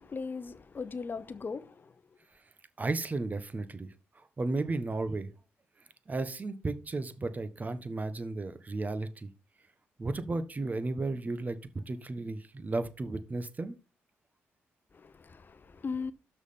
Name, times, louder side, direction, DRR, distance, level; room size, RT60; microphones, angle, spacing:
voice 1, 0.0-1.9 14.9-16.1, left 5 dB, 40° left, 0.9 m, -38 dB
voice 2, 2.8-3.9 4.4-5.3 6.1-9.3 10.0-11.6 11.9-13.8, right 3 dB, 35° right, 1.3 m, -34 dB
6.2 x 5.6 x 7.0 m
cardioid pair, 70°, 5 cm